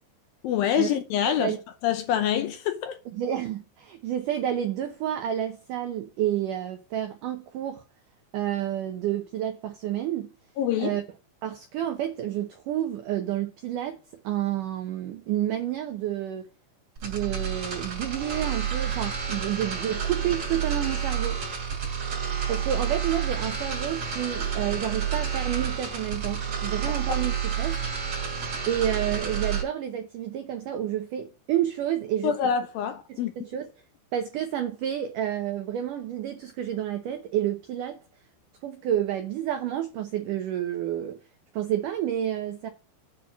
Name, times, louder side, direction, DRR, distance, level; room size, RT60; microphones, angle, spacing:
voice 1, 0.4-1.5 1.8-3.0 10.6-11.0 27.1-27.2 32.2-33.3, left 9 dB, 75° left, 2.2 m, -26 dB
voice 2, 1.3-1.6 3.1-7.8 8.3-10.3 10.8-11.0 11.4-16.5 17.0-21.4 22.5-27.8 28.7-32.3 33.1-33.7 34.1-38.0 38.6-41.2 41.5-42.7, right 11 dB, 85° right, 1.8 m, -30 dB
sound 1, 17.0-29.6, right 7 dB, 40° right, 3.5 m, -29 dB
8.3 x 4.4 x 7.2 m
omnidirectional pair, 4.9 m